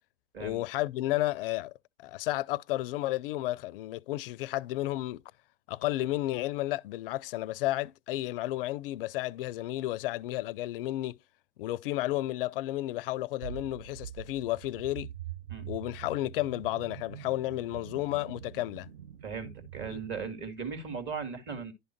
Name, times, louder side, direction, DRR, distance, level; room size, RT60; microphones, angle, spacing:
voice 1, 0.4-1.7 2.0-5.2 5.7-11.2 11.6-15.1 15.7-18.9 19.9-20.0, left 16 dB, 50° left, 0.5 m, -32 dB
sound 1, 13.4-20.3, right 10 dB, 70° right, 1.0 m, -44 dB
voice 2, 19.2-21.7, right 5 dB, 30° right, 2.1 m, -37 dB
11.0 x 3.6 x 4.4 m
hypercardioid pair, 100°, 36 cm